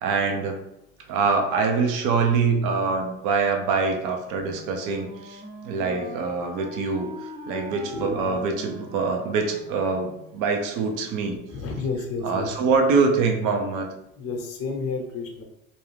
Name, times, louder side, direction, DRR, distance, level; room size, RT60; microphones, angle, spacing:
voice 1, 0.0-0.6 1.1-7.1 7.5-11.4 12.2-13.9, right 4 dB, 55° right, 4 dB, 0.7 m, -24 dB
Wind instrument woodwind instrument, 4.3-10.4, left 1 dB, 10° right, 0.5 m, -41 dB
voice 2, 7.9-8.4 11.5-12.5 14.2-15.4, left 3 dB, 35° left, 2 dB, 0.8 m, -31 dB
2.6 x 2.3 x 3.3 m, 0.86 s
hypercardioid pair, 90°, 39 cm